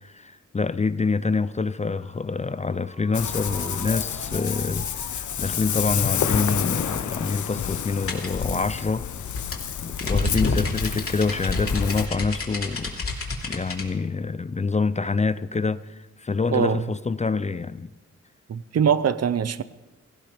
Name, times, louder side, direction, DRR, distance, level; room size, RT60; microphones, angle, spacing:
voice 1, 0.0-9.0 9.8-13.0 13.4-17.9, left 4 dB, 25° left, 0.5 m, -26 dB
Ringtone, 1.8-9.3, right 2 dB, 35° right, 2.8 m, -46 dB
Ocean, 3.1-12.1, left 9 dB, 75° left, 0.9 m, -29 dB
sound 1, 8.1-13.9, left 3 dB, 45° left, 2.9 m, -28 dB
voice 2, 16.5-16.8 18.5-19.6, right 7 dB, 55° right, 0.7 m, -22 dB
17.5 x 15.0 x 5.1 m
cardioid pair, 80°, 30 cm